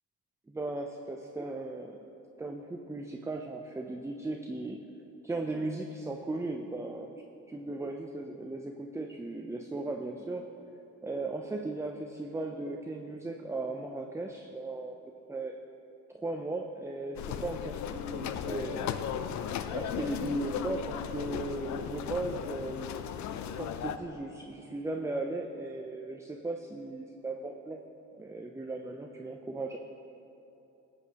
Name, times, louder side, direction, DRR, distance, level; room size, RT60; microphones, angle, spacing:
voice 1, 0.5-2.0 2.4-4.8 5.2-10.5 11.0-14.9 15.3-15.6 16.1-18.9 19.6-22.9 23.5-27.8 28.2-29.8, right 2 dB, 10° right, 3 dB, 0.4 m, -37 dB
sound 1, 17.1-24.0, left 9 dB, 70° left, 0.5 m, -36 dB
13.0 x 8.2 x 2.8 m, 2.9 s
cardioid pair, 90°, 30 cm